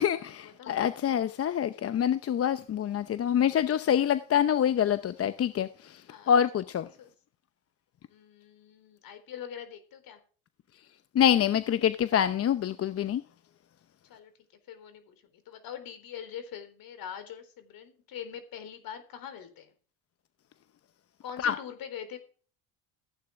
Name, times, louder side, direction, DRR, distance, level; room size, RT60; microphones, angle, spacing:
voice 1, 0.0-6.0 6.3-6.9 11.1-13.2 21.4-21.6, left 9 dB, 35° left, 0.8 m, -26 dB
voice 2, 8.1-10.2 14.1-14.3 14.7-19.7 21.2-22.2, left 8 dB, 55° left, 4.0 m, -43 dB
15.0 x 9.3 x 3.7 m
supercardioid pair, 95°, 40 cm